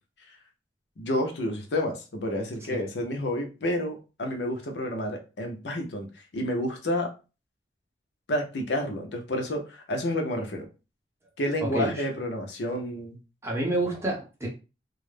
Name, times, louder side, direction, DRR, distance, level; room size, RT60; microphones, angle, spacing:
voice 1, 1.0-6.1 6.3-7.1 8.3-10.6 11.4-13.2, left 1 dB, 75° left, 3 dB, 0.6 m, -30 dB
voice 2, 11.6-12.0 13.4-14.5, right 2 dB, 15° right, -2 dB, 0.7 m, -28 dB
2.3 x 2.0 x 3.2 m, 0.31 s
head